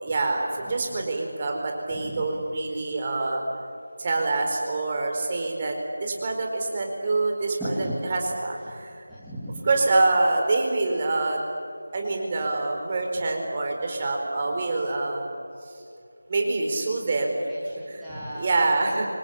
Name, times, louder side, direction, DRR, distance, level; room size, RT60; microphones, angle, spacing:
voice 1, 0.0-3.4 4.0-5.7 6.0-9.0 9.7-11.4 11.9-15.3 16.3-17.4 17.9-18.0 18.4-19.1, right 2 dB, 25° right, 2 dB, 4.5 m, -26 dB
voice 2, 0.6-1.0 1.9-2.4 7.6-8.1 8.6-8.8 9.1-9.7 17.5-18.5, equal, ahead, -13 dB, 3.1 m, -36 dB
26.5 x 26.0 x 8.6 m, 2.5 s
figure-of-eight pair, 165°, 0 cm